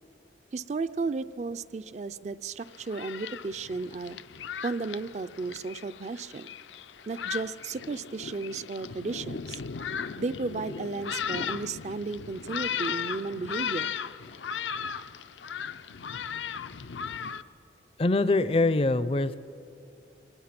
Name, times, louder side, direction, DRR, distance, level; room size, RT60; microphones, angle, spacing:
voice 1, 0.5-4.2 4.6-6.5 7.1-9.6 10.2-13.9, right 3 dB, 40° right, 14 dB, 0.4 m, -34 dB
Thunderstorm, 2.6-17.4, left 7 dB, 85° left, 0.6 m, -37 dB
voice 2, 18.0-19.4, left 2 dB, 30° left, 15 dB, 0.4 m, -23 dB
24.0 x 20.0 x 5.9 m, 2.8 s
head